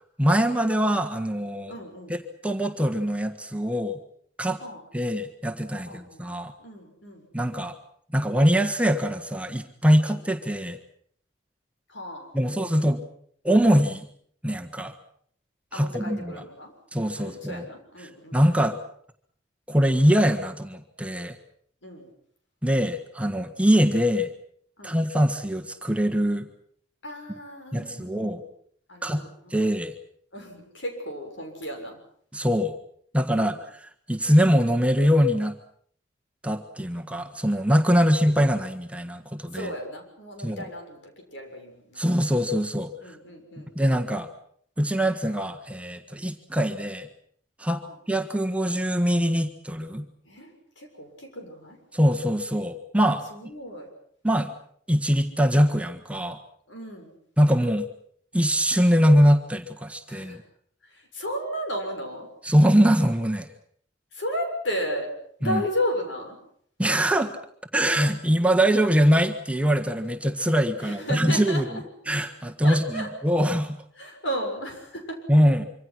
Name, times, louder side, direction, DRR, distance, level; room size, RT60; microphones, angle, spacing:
voice 1, 0.2-1.7 2.1-2.2 2.4-4.0 4.4-4.6 4.9-6.5 7.3-7.7 8.1-10.8 12.3-13.0 13.4-14.1 14.4-14.9 15.7-16.4 16.9-17.6 18.3-18.8 19.7-21.4 22.6-24.3 24.8-26.5 27.7-28.4 29.0-29.2 29.5-29.9 32.3-32.8 33.1-35.6 36.4-39.7 40.4-40.6 42.0-42.9 43.7-44.3 44.8-47.1 47.6-47.8 48.1-50.0 51.9-53.2 54.2-54.5 54.9-56.4 57.4-57.9 58.3-60.4 62.4-63.5 65.4-65.6 66.8-67.3 67.7-71.8 72.1-73.8 75.3-75.6, equal, 5° right, 4 dB, 1.5 m, -23 dB
voice 2, 1.7-2.2 4.6-4.8 5.9-6.2 6.6-7.3 10.1-10.2 11.9-12.8 15.7-16.7 17.1-18.4 21.8-22.1 24.8-25.0 27.0-28.4 28.9-29.6 30.3-32.0 33.3-33.6 37.9-38.4 39.5-42.1 43.0-43.7 47.8-48.0 50.2-51.8 53.3-53.9 56.7-57.2 60.1-60.4 60.8-62.3 64.1-65.1 65.4-66.4 70.8-71.8 72.6-73.1 74.0-75.2, equal, 85° left, 3 dB, 6.9 m, -34 dB
25.5 x 25.0 x 6.1 m, 0.64 s
head